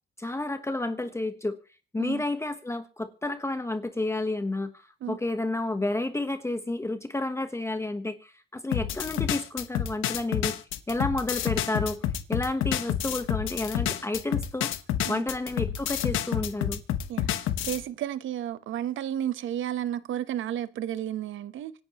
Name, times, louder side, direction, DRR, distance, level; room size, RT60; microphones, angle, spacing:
voice 1, 0.2-1.6 1.9-10.6 10.9-12.0 12.3-14.7 15.1-16.8, left 2 dB, 15° left, 1.1 m, -30 dB
sound 1, 8.7-17.8, left 11 dB, 90° left, 1.2 m, -29 dB
voice 2, 17.1-21.7, right 11 dB, 75° right, 1.0 m, -32 dB
26.0 x 10.5 x 3.0 m
cardioid pair, 90°, 20 cm